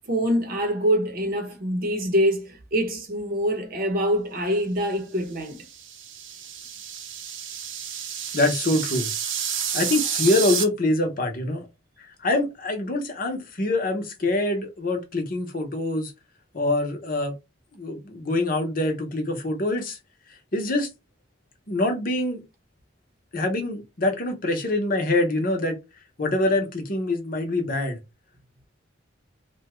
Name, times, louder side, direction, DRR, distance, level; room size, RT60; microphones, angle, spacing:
voice 1, 0.1-5.7, equal, 50° right, 0.8 m, -25 dB
sound 1, 5.5-10.6, right 8 dB, 90° right, 0.7 m, -30 dB
voice 2, 8.3-9.1 9.7-11.7 12.2-16.1 16.5-17.3 17.7-20.0 20.5-20.9 21.7-22.4 23.3-25.8 26.2-28.0, left 2 dB, 50° left, 0.8 m, -25 dB
2.8 x 2.2 x 3.0 m
head